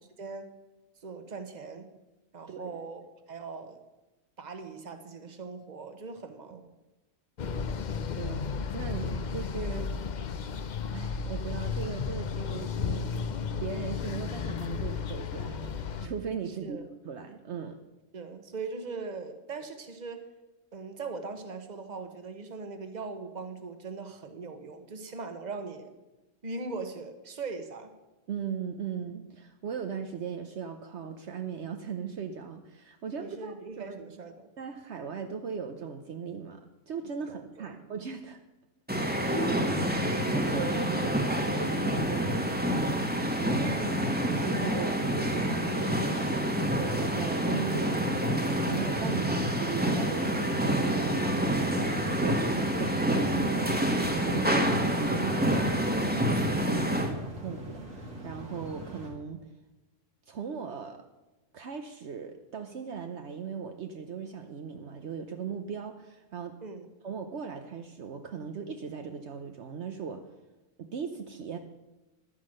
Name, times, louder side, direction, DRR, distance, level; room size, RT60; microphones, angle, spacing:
voice 1, 1.0-1.9 2.3-3.0 3.3-3.8 4.4-6.6 16.5-16.8 18.1-20.3 20.7-25.9 26.4-27.9 33.2-34.5 37.2-37.7 43.7-44.1 56.8-57.0 66.6-66.9, right 4 dB, 35° right, 7 dB, 1.2 m, -40 dB
sound 1, 7.4-16.1, left 5 dB, 50° left, 0.6 m, -33 dB
voice 2, 8.1-9.9 10.9-13.1 13.6-17.8 28.3-34.0 34.6-38.4 40.1-42.8 43.4-43.8 44.3-47.9 48.2-51.9 52.2-53.7 54.1-59.4 60.3-61.0 61.5-66.6 67.0-70.2 70.8-71.6, right 6 dB, 65° right, 5 dB, 1.1 m, -38 dB
sound 2, 38.9-57.1, equal, 10° right, 1.2 m, -27 dB
sound 3, 51.6-59.1, right 1 dB, 85° right, 3.1 m, -42 dB
11.5 x 9.8 x 6.4 m, 1.1 s
omnidirectional pair, 1.3 m